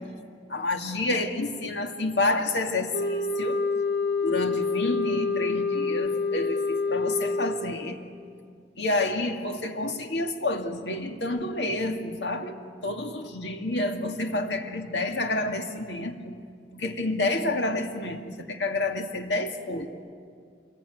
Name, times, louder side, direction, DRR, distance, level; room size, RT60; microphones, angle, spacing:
voice 1, 0.5-3.6 4.2-8.0 8.8-16.3 16.7-19.9, left 2 dB, 80° left, 5 dB, 2.2 m, -29 dB
sound 1, 2.9-7.8, left 3 dB, 60° left, 2.0 m, -27 dB
27.0 x 21.5 x 9.4 m, 2.2 s
head